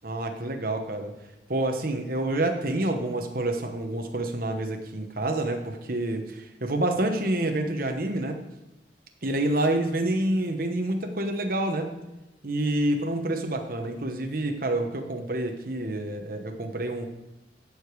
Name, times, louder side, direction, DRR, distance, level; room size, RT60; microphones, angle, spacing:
voice 1, 0.0-1.1 1.5-8.4 9.2-11.9 12.4-17.1, right 1 dB, 50° right, 4 dB, 1.1 m, -28 dB
15.0 x 5.1 x 4.8 m, 0.99 s
head